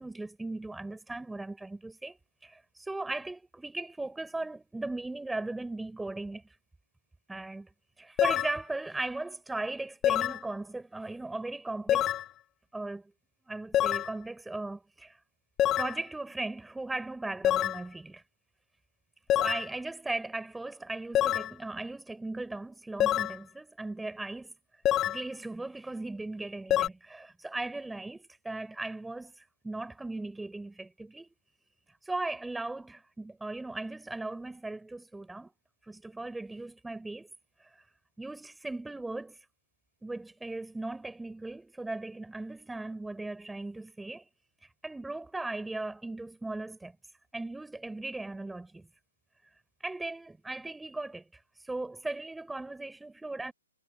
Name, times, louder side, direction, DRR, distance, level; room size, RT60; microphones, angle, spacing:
voice 1, 0.0-2.2 2.4-6.6 7.3-7.7 8.0-12.1 12.7-13.0 13.5-15.2 15.8-18.2 19.3-24.5 25.0-31.3 32.0-35.5 35.8-37.3 37.6-37.8 38.2-39.4 40.0-44.3 44.6-47.0 47.3-48.9 49.8-53.5, right 2 dB, 5° right, 4.5 m, -38 dB
sound 1, 8.2-8.6 10.0-10.4 11.9-12.3 13.7-14.1 15.6-16.0 17.4-17.8 19.3-19.7 21.1-21.5 23.0-23.4 24.8-25.2 26.7-26.9, left 12 dB, 20° left, 0.3 m, -26 dB
hypercardioid pair, 135°, 0 cm